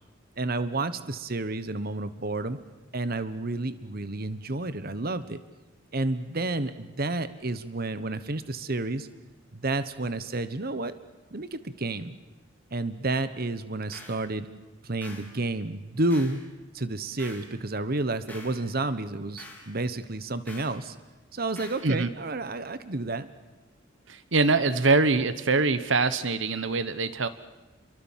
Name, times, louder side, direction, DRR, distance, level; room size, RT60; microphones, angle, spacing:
voice 1, 0.4-2.6 2.9-5.4 5.9-9.1 9.5-10.9 11.3-12.1 12.7-14.5 14.8-16.4 16.7-21.0 21.3-23.3, right 2 dB, 50° right, 13 dB, 1.2 m, -30 dB
sound 1, 13.9-14.2 15.0-15.3 16.1-16.4 17.2-17.5 18.3-18.6 19.4-19.7 20.5-20.8 21.6-21.9, left 2 dB, 10° left, 4.5 m, -46 dB
voice 2, 24.1-27.3, right 3 dB, 70° right, 13 dB, 1.2 m, -24 dB
29.0 x 23.5 x 7.4 m, 1.2 s
head